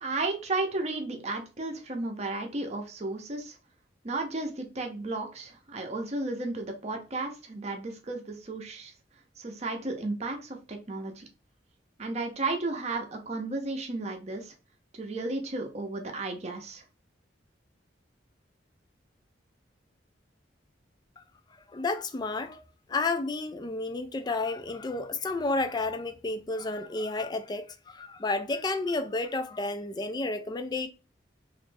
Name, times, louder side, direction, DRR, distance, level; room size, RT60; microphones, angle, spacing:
voice 1, 0.0-3.6 4.0-8.9 9.4-11.2 12.0-14.5 14.9-16.8, right 2 dB, 35° right, 0.7 m, -33 dB
voice 2, 21.7-22.6 22.9-30.9, left 3 dB, 25° left, 0.4 m, -31 dB
3.1 x 2.5 x 3.3 m
head